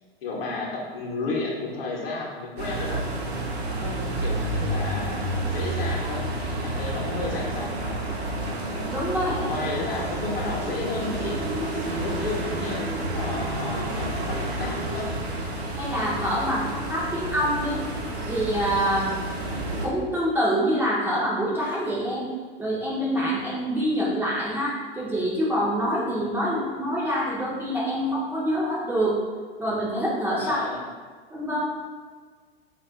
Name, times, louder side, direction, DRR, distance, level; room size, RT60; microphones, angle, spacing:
voice 1, 0.2-3.0 3.7-6.2 6.6-8.0 9.1-11.4 11.9-15.1 30.4-30.8, left 3 dB, 65° left, -2 dB, 0.8 m, -33 dB
sound 1, 2.6-19.9, right 1 dB, 80° right, 0.7 m, -30 dB
voice 2, 8.9-9.5 15.8-17.8 18.3-19.1 19.8-22.3 22.6-29.2 29.6-30.6 31.3-31.7, equal, 5° right, -8 dB, 0.4 m, -26 dB
2.3 x 2.3 x 3.5 m, 1.5 s
figure-of-eight pair, 95°, 31 cm